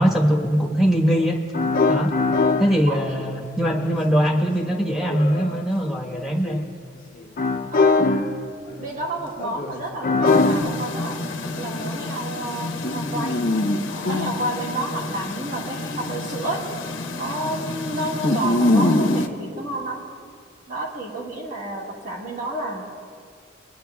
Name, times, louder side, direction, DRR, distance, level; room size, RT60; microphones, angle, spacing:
voice 1, 0.0-1.4 1.9-2.1 2.6-6.6, equal, ahead, -2 dB, 1.2 m, -21 dB
sound 1, 1.2-1.3 1.5-3.3 3.8-6.7 7.2-8.4 8.7-10.6, left 3 dB, 45° left, 0.5 m, -22 dB
voice 2, 2.9-3.3 7.7-8.5 8.8-13.5 14.0-16.6 17.1-20.0 20.7-22.8, right 1 dB, 40° right, -3 dB, 1.6 m, -30 dB
sound 2, 10.3-19.3, left 2 dB, 80° left, 0.8 m, -25 dB
24.5 x 9.9 x 2.3 m, 2.2 s
head